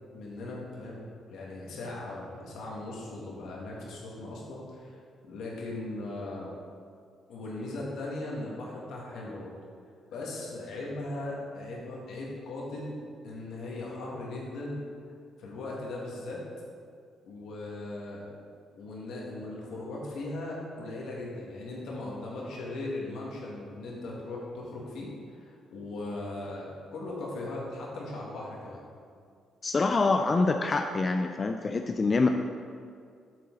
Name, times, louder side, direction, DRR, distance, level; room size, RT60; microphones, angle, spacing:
voice 1, 0.1-6.5 7.3-9.5 10.1-14.8 15.4-16.4 17.2-18.3 18.7-28.8, left 2 dB, 80° left, -3 dB, 2.0 m, -38 dB
voice 2, 29.6-32.3, left 3 dB, 35° left, 5 dB, 0.4 m, -25 dB
7.8 x 6.8 x 4.0 m, 2.3 s
cardioid pair, 90°, 0 cm